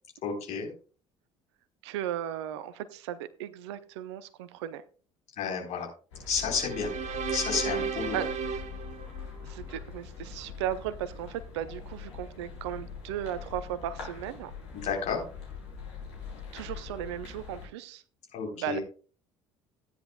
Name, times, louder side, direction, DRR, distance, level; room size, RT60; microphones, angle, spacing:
voice 1, 0.2-0.7 5.4-5.9 6.3-6.9 7.3-8.2 14.7-15.2 18.3-18.8, left 5 dB, 50° left, 2 dB, 4.1 m, -31 dB
voice 2, 1.8-4.8 8.1-8.3 9.4-14.5 16.5-18.0 18.5-18.8, right 11 dB, 65° right, 15 dB, 0.8 m, -36 dB
sound 1, 6.1-17.7, left 6 dB, 70° left, 3.8 m, -43 dB
sound 2, 6.4-9.8, right 6 dB, 45° right, 1.5 m, -35 dB
15.5 x 9.9 x 2.3 m, 0.37 s
figure-of-eight pair, 55°, 16 cm